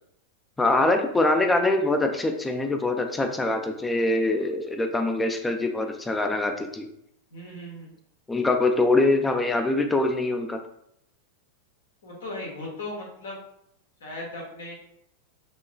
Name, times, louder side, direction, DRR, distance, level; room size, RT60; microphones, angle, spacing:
voice 1, 0.6-6.9 8.3-10.6, left 2 dB, 10° left, 5 dB, 0.4 m, -23 dB
voice 2, 7.3-7.9 12.0-13.4 14.0-14.8, left 1 dB, 65° left, -2 dB, 1.4 m, -37 dB
5.2 x 3.1 x 2.2 m, 0.72 s
figure-of-eight pair, 90°, 0 cm